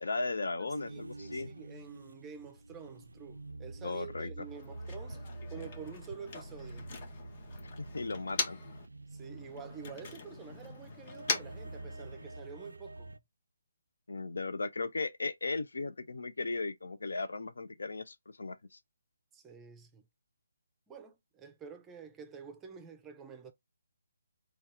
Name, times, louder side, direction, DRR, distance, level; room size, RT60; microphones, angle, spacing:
voice 1, 0.0-1.5 3.8-4.5 7.6-8.6 14.1-18.8, left 3 dB, 70° left, 0.5 m, -37 dB
voice 2, 0.6-5.2 5.5-7.0 9.1-13.2 19.3-20.1 20.9-23.5, right 6 dB, 10° right, 0.5 m, -48 dB
sound 1, 0.7-13.2, right 2 dB, 75° right, 0.3 m, -47 dB
Motor vehicle (road), 4.4-8.9 9.2-12.4, left 4 dB, 40° left, 0.9 m, -41 dB
4.1 x 2.3 x 3.4 m
figure-of-eight pair, 145°, 0 cm